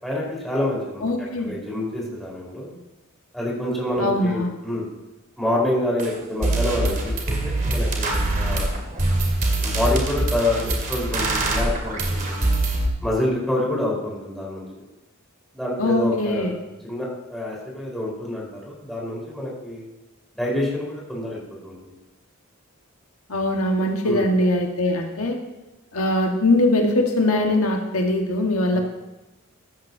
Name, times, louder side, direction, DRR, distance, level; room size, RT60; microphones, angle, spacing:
voice 1, 0.0-1.1 1.4-2.8 3.3-4.9 5.4-8.7 9.6-12.5 13.0-14.6 15.5-16.6 16.8-19.8 20.4-21.9 24.0-24.2 28.7-28.8, left 1 dB, ahead, -5 dB, 4.5 m, -27 dB
voice 2, 1.0-1.5 4.0-4.5 15.8-16.5 23.3-25.4 25.9-28.8, left 1 dB, 85° left, 2 dB, 1.6 m, -21 dB
sound 1, 6.0-6.1 6.4-12.9, right 2 dB, 40° right, 2.4 m, -23 dB
15.5 x 13.0 x 2.8 m, 1.0 s
head